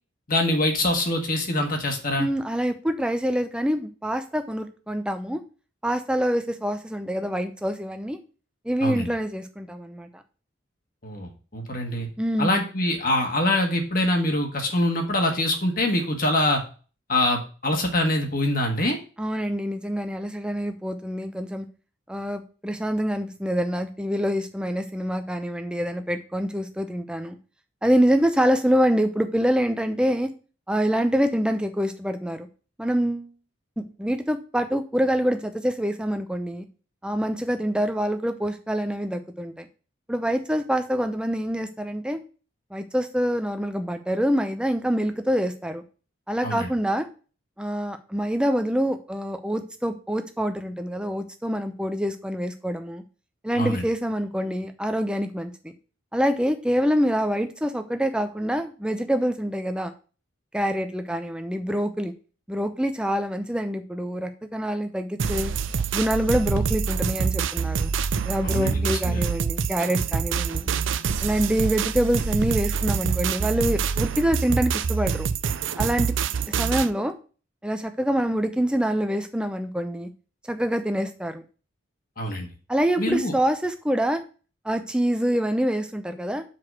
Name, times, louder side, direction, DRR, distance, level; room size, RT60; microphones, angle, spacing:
voice 1, 0.3-2.3 8.8-9.1 11.0-12.1 12.4-16.6 17.1-19.0 46.4-46.7 53.5-53.8 68.4-69.2 82.2-82.5 83.0-83.3, left 1 dB, 45° left, 2 dB, 1.5 m, -24 dB
voice 2, 2.2-5.4 5.8-8.2 8.6-10.1 12.2-12.5 19.2-21.7 22.1-27.4 27.8-30.3 30.7-32.5 32.8-33.3 33.8-36.7 37.0-39.7 40.1-42.2 42.7-45.8 46.3-47.1 47.6-53.0 53.4-55.7 56.1-59.9 60.5-62.1 62.5-65.5 65.9-67.9 68.3-70.7 71.2-75.3 75.8-76.1 76.5-77.1 77.6-80.1 80.5-81.4 82.7-84.2 84.6-86.4, equal, 5° right, 7 dB, 0.6 m, -25 dB
sound 1, 65.2-76.9, right 6 dB, 70° right, 0.5 m, -26 dB
6.0 x 4.8 x 6.2 m, 0.37 s
head